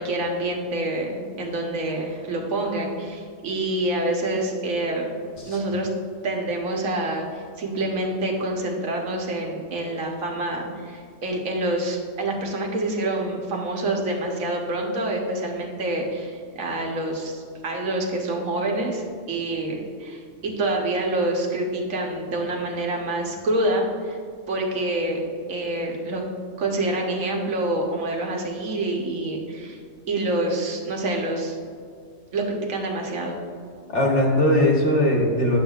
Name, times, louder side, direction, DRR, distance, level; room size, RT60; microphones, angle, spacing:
voice 1, 0.0-5.1 5.5-5.9 6.2-24.2 24.5-26.2 26.6-29.8 30.1-31.6 32.3-33.4, right 1 dB, 75° right, 0 dB, 1.4 m, -27 dB
voice 2, 33.9-35.6, left 1 dB, 60° left, -2 dB, 1.4 m, -20 dB
9.8 x 7.1 x 2.4 m, 2.1 s
omnidirectional pair, 1.4 m